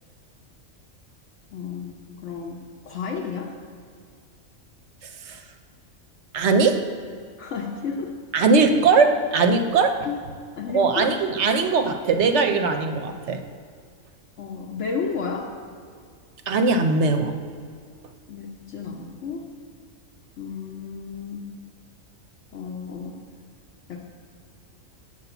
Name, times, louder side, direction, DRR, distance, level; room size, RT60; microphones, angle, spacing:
voice 1, 1.5-3.5 7.4-8.1 10.0-10.2 10.6-11.1 14.4-15.5 18.3-19.5 20.4-21.5 22.5-23.2 23.9-24.0, left 5 dB, 70° left, -2 dB, 1.0 m, -32 dB
voice 2, 6.3-6.8 8.3-10.1 10.7-13.4 16.5-17.4, right 4 dB, 65° right, 7 dB, 0.8 m, -20 dB
6.8 x 4.9 x 6.9 m, 2.1 s
omnidirectional pair, 1.4 m